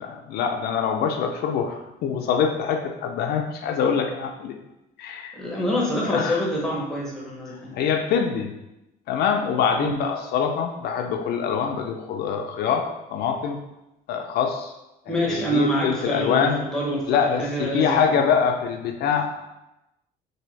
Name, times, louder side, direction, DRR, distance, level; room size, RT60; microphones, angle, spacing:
voice 1, 0.0-4.6 5.0-5.3 6.1-6.4 7.7-8.5 9.1-13.6 14.1-14.7 15.1-16.6 17.1-19.4, left 7 dB, 75° left, 4 dB, 0.4 m, -24 dB
voice 2, 5.4-7.8 9.7-10.0 15.1-17.0 17.4-18.2, equal, 5° left, -5 dB, 1.0 m, -26 dB
3.4 x 2.7 x 3.1 m, 0.93 s
cardioid pair, 110°, 17 cm